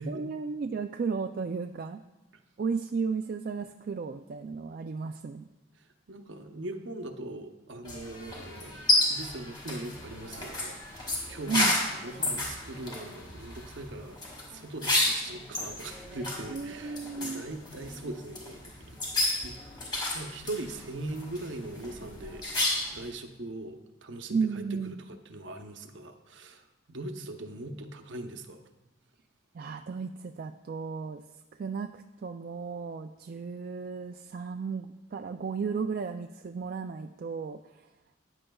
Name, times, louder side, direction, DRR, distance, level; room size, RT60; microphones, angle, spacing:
voice 1, 0.0-2.0 2.6-5.5 11.5-11.8 16.5-17.4 24.3-25.0 29.5-31.2 31.6-37.9, right 5 dB, 45° right, 6 dB, 0.3 m, -34 dB
voice 2, 6.1-14.2 14.5-19.0 19.4-19.6 20.1-28.6, right 2 dB, 65° right, 6 dB, 0.8 m, -41 dB
sound 1, 7.8-23.1, left 1 dB, 20° left, 2.0 m, -32 dB
14.0 x 9.8 x 2.3 m, 1.0 s
head